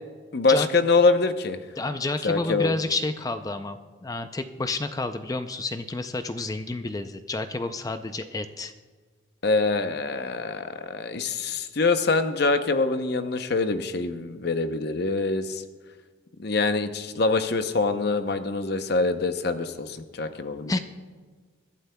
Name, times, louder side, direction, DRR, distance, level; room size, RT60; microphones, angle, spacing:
voice 1, 0.3-1.6 2.2-2.7 9.4-15.6 16.4-20.8, left 3 dB, 55° left, 9 dB, 0.7 m, -24 dB
voice 2, 1.8-8.7 20.7-20.8, left 2 dB, 20° left, 9 dB, 0.4 m, -30 dB
24.5 x 11.5 x 2.2 m, 1.5 s
head